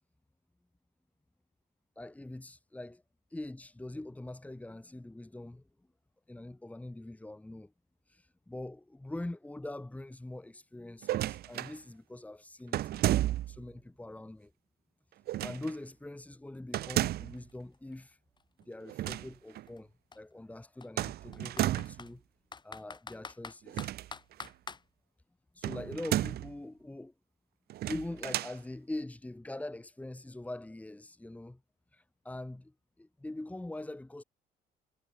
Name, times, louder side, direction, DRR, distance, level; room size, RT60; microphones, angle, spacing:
voice 1, 1.9-3.0 3.3-5.6 6.3-7.7 8.1-13.1 13.5-14.5 15.4-18.2 18.7-22.2 22.6-23.9 25.5-27.1 27.9-31.6 31.9-34.2, left 1 dB, 10° left, 3.4 m, -43 dB
sound 1, 11.0-11.8 12.7-13.6 15.3-15.7 16.7-17.4 18.9-19.3 19.6-19.7 21.0-22.1 23.7-24.5 25.6-26.5 27.7-28.6, right 14 dB, 70° right, 1.6 m, -32 dB
Computer keyboard, 16.5-16.6 16.9-18.9 19.7-19.8 20.1-20.2 20.8-22.1 22.5-24.8, left 5 dB, 25° left, 3.8 m, -46 dB
cardioid pair, 110°, 17 cm